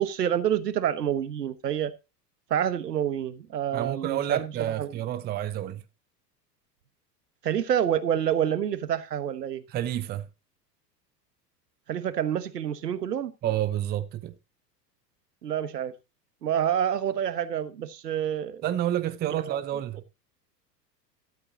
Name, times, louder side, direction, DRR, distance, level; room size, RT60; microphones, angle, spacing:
voice 1, 0.0-1.9 2.5-4.5 4.8-4.9 7.4-9.6 11.9-13.3 15.4-15.9 16.4-18.6 19.4-19.6, right 9 dB, 70° right, 1.3 m, -27 dB
voice 2, 3.7-5.8 9.7-10.3 13.4-14.3 18.6-20.0, right 12 dB, 20° right, 0.7 m, -29 dB
13.0 x 12.5 x 2.8 m
figure-of-eight pair, 85°, 50 cm